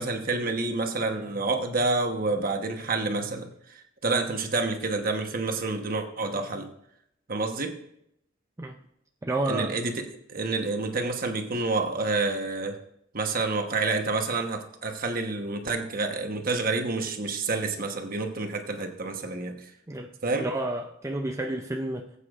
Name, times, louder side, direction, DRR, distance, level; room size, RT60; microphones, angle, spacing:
voice 1, 0.0-3.5 4.0-6.7 7.3-7.7 9.5-12.8 13.1-19.6 20.2-20.5, right 3 dB, 45° right, 5 dB, 1.1 m, -28 dB
voice 2, 9.2-9.8 19.9-22.1, right 2 dB, 15° right, 3 dB, 0.5 m, -30 dB
19.5 x 8.3 x 2.5 m, 0.76 s
head